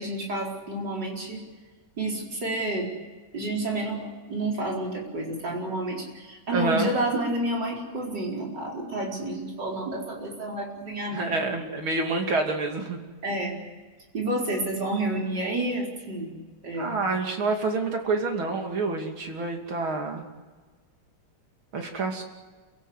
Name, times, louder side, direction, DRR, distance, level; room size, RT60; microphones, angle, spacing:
voice 1, 0.0-1.4 2.0-2.9 3.3-11.3 13.2-13.6 14.1-16.3 16.6-16.9, right 1 dB, 55° right, -2 dB, 5.3 m, -30 dB
voice 2, 6.5-6.9 11.1-13.0 16.8-20.2 21.7-22.2, right 3 dB, 85° right, 3 dB, 3.5 m, -27 dB
28.0 x 16.5 x 8.2 m, 1.4 s
omnidirectional pair, 2.2 m